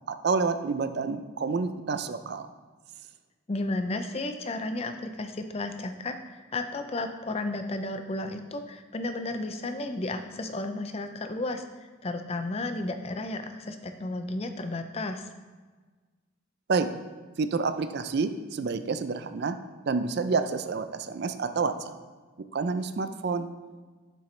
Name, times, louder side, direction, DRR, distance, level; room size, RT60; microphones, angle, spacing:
voice 1, 0.1-2.5 16.7-16.9 17.4-19.6 19.9-22.0 22.5-23.5, right 4 dB, 50° right, 10 dB, 0.4 m, -28 dB
voice 2, 3.5-15.3, left 2 dB, 30° left, 7 dB, 0.4 m, -33 dB
7.7 x 7.3 x 3.2 m, 1.4 s
head